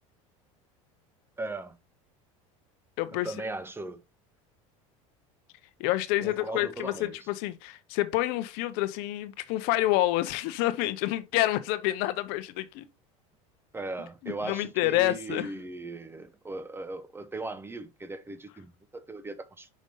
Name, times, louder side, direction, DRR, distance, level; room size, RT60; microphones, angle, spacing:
voice 1, 1.4-1.8 3.2-4.0 6.2-7.2 13.7-19.7, right 2 dB, 15° right, 0.8 m, -38 dB
voice 2, 3.0-3.3 5.8-12.9 14.2-15.5, left 16 dB, 65° left, 0.7 m, -28 dB
5.2 x 5.2 x 3.8 m
supercardioid pair, 105°, 17 cm